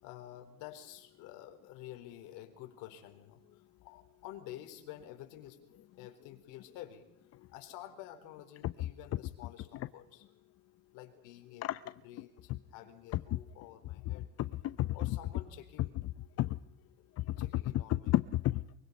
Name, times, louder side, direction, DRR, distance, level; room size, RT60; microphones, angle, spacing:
voice 1, 0.0-5.6 6.0-7.1 7.5-10.3 10.9-14.3 14.9-16.0 17.4-18.2, left 12 dB, 70° left, 4.0 m, -50 dB
voice 2, 14.2-15.1 16.4-16.6 17.2-17.5 17.9-18.6, left 15 dB, 50° left, 0.7 m, -32 dB
24.0 x 23.5 x 5.4 m
supercardioid pair, 110°, 32 cm